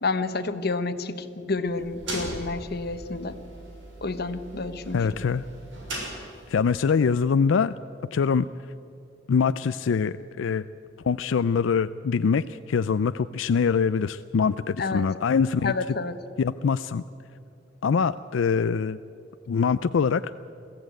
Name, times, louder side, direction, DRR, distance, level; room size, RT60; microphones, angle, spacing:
voice 1, 0.0-3.4 4.0-5.0 14.8-15.1 15.6-16.2, left 3 dB, 55° left, 10 dB, 1.1 m, -29 dB
sound 1, 1.6-6.7, right 1 dB, 75° right, 6.0 m, -39 dB
voice 2, 4.9-5.4 6.1-6.2 6.5-7.8 8.1-8.5 9.3-10.6 11.0-15.7 16.4-17.0 17.8-19.0 19.5-20.2, left 6 dB, 85° left, 13 dB, 0.4 m, -24 dB
21.5 x 15.0 x 9.2 m, 2.6 s
head